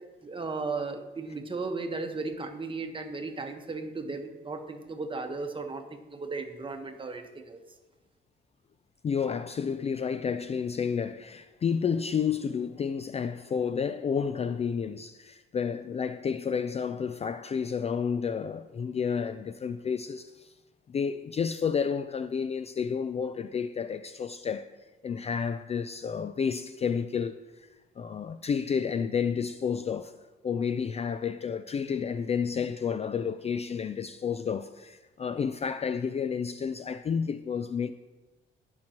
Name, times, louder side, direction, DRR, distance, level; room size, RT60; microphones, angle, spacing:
voice 1, 0.2-7.6, right 3 dB, 25° right, 1.2 m, -35 dB
voice 2, 9.0-20.5 20.9-24.7 25.0-27.4 28.0-30.1 30.4-37.9, left 6 dB, 35° left, 0.3 m, -30 dB
18.0 x 6.1 x 2.9 m
cardioid pair, 90°, 20 cm